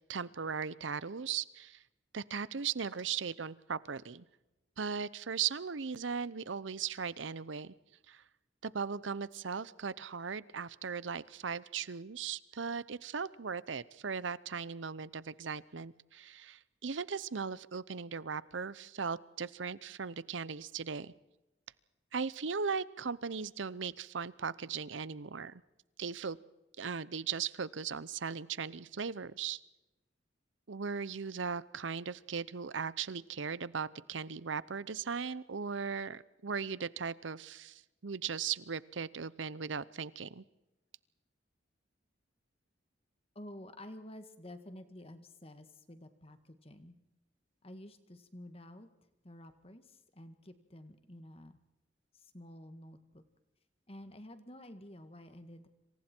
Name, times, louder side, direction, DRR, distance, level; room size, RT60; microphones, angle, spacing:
voice 1, 0.1-1.8 2.1-4.2 4.8-7.7 8.1-8.2 8.6-21.1 22.1-25.6 26.0-26.4 26.8-29.6 30.7-40.4, right 6 dB, 85° right, 19 dB, 0.8 m, -38 dB
voice 2, 43.4-47.0 47.6-48.9 49.2-51.6 52.1-53.2 53.9-55.7, left 1 dB, 30° left, 9 dB, 1.8 m, -51 dB
27.0 x 27.0 x 4.5 m, 0.96 s
head